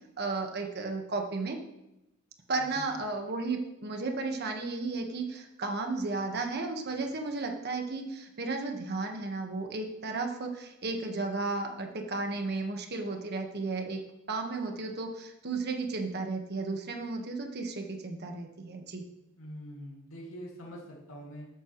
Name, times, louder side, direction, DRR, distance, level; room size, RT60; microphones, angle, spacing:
voice 1, 0.2-1.6 2.5-14.0 14.3-19.0, right 3 dB, 50° right, 3 dB, 1.4 m, -34 dB
voice 2, 19.4-21.5, equal, 75° left, -4 dB, 2.4 m, -44 dB
13.0 x 9.9 x 3.1 m, 0.92 s
head